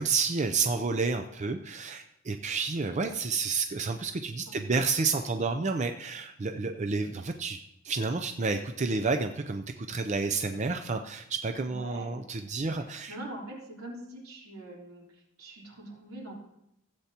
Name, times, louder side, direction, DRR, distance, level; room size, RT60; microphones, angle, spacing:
voice 1, 0.0-7.6 7.8-13.1, right 4 dB, 35° right, 6 dB, 0.5 m, -30 dB
voice 2, 11.7-12.2 12.6-16.3, right 1 dB, 80° right, -4 dB, 3.6 m, -43 dB
16.5 x 8.3 x 2.9 m, 0.80 s
head